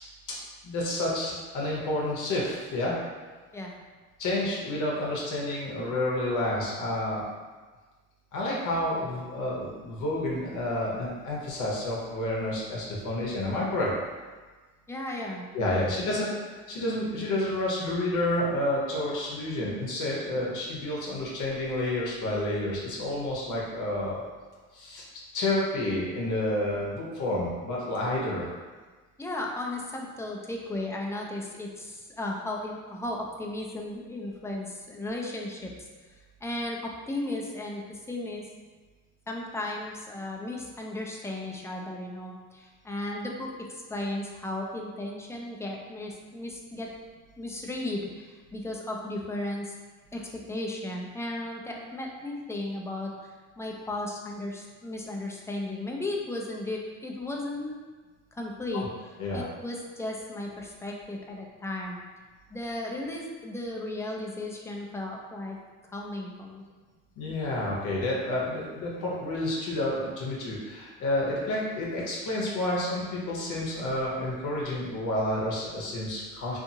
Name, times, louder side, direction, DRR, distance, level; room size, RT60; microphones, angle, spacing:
voice 1, 0.6-3.0 4.2-7.3 8.3-13.9 15.5-24.2 24.7-25.0 25.3-28.5 58.7-58.9 59.2-59.4 67.2-76.6, left 1 dB, 80° left, -5 dB, 0.7 m, -30 dB
voice 2, 14.9-16.2 29.2-35.7 36.4-38.4 39.3-46.9 47.4-49.7 50.1-57.8 58.3-58.8 59.3-62.0 62.5-65.6 65.9-66.7, left 1 dB, 10° left, -1 dB, 0.4 m, -35 dB
2.7 x 2.5 x 2.6 m, 1.4 s
cardioid pair, 90°, 30 cm